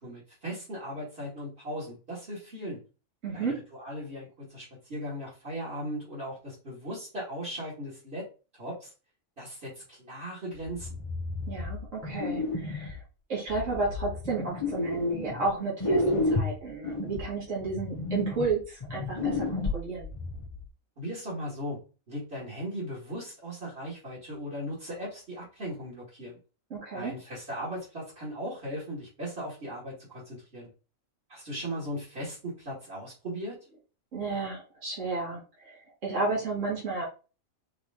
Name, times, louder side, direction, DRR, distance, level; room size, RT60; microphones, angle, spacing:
voice 1, 0.0-2.8 3.3-3.5 3.8-8.3 8.6-8.9 9.4-11.0 21.0-21.8 22.1-26.4 26.9-30.7 31.3-33.6, equal, 45° right, -7 dB, 2.2 m, -38 dB
voice 2, 3.2-3.6 11.5-13.0 13.3-20.1 26.7-27.1 34.1-37.0, right 3 dB, 65° right, -6 dB, 2.4 m, -32 dB
sound 1, 10.6-13.0 13.5-15.5 15.8-20.6, left 2 dB, 35° left, 0.6 m, -31 dB
4.9 x 3.0 x 3.7 m, 0.34 s
omnidirectional pair, 1.4 m